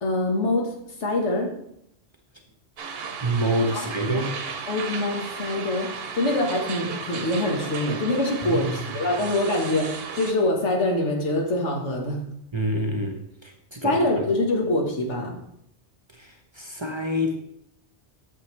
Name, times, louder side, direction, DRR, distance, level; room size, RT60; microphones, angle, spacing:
voice 1, 0.0-0.7 1.0-1.5 3.7-4.3 4.7-12.2 13.8-15.4, left 1 dB, 85° left, 0 dB, 1.7 m, -25 dB
sound 1, 2.8-10.3, right 6 dB, 60° right, 0.9 m, -35 dB
voice 2, 3.2-4.3 8.4-8.7 12.5-14.3 16.1-17.5, right 1 dB, 30° right, 3 dB, 0.7 m, -27 dB
8.5 x 6.7 x 3.2 m, 0.75 s
omnidirectional pair, 1.2 m